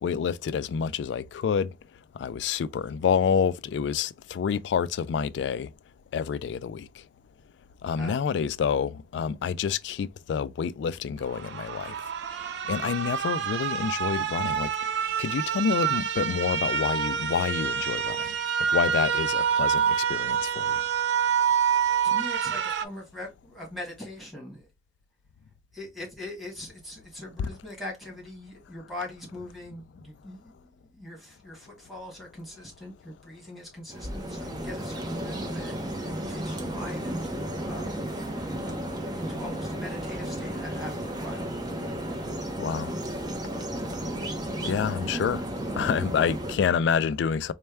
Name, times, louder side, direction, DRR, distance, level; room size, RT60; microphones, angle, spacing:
voice 1, 0.0-1.7 2.2-5.7 6.1-6.8 7.8-11.9 12.7-14.7 15.2-18.2 18.7-20.8 27.4-27.5 42.6-42.9 44.6-45.4 45.7-47.5, left 7 dB, 85° left, 0.3 m, -28 dB
sound 1, 11.3-22.9, right 8 dB, 70° right, 0.3 m, -27 dB
voice 2, 22.0-24.7 25.7-38.0 38.2-38.7 39.2-41.6, left 1 dB, ahead, 1.5 m, -41 dB
sound 2, 33.9-46.6, right 1 dB, 25° right, 0.7 m, -33 dB
4.3 x 2.2 x 3.3 m
head